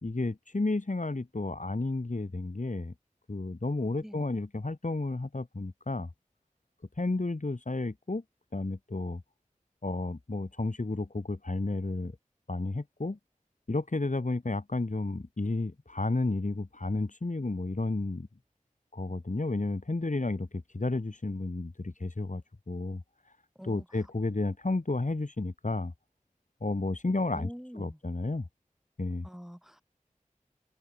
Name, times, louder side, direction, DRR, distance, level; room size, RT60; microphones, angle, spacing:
voice 1, 0.0-2.9 3.3-6.1 7.0-8.2 8.5-9.2 9.8-12.1 12.5-13.2 13.7-18.3 18.9-22.4 22.7-23.0 23.6-25.9 26.6-28.4 29.0-29.3, left 2 dB, 65° left, 3.3 m, -32 dB
voice 2, 27.3-28.0 29.2-29.8, equal, 5° right, 6.6 m, -45 dB
open air
wide cardioid pair, 45°, 14 cm